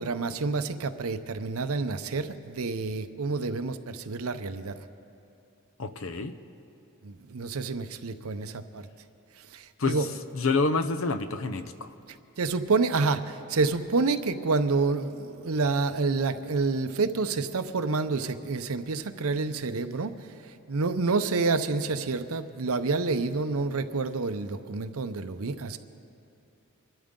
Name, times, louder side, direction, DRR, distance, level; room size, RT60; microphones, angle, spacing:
voice 1, 0.0-4.7 7.0-8.9 9.5-10.1 12.4-20.1 20.7-25.8, right 3 dB, 80° right, 10 dB, 0.7 m, -28 dB
voice 2, 5.8-6.4 9.8-11.9, left 3 dB, 65° left, 10 dB, 0.7 m, -28 dB
25.5 x 12.5 x 3.8 m, 2.7 s
head